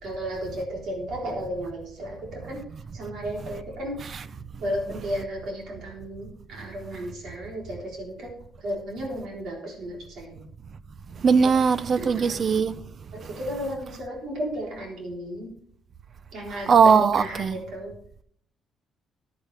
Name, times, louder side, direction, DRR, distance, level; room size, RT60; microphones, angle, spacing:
voice 1, 0.0-2.6 2.9-3.9 4.6-8.3 8.6-10.4 12.0-12.5 13.1-15.5 16.3-17.9, equal, 65° right, 3.8 m, -34 dB
voice 2, 11.2-12.7 16.7-17.6, right 5 dB, 45° right, 0.6 m, -20 dB
14.5 x 9.7 x 3.4 m
cardioid pair, 115°, 0 cm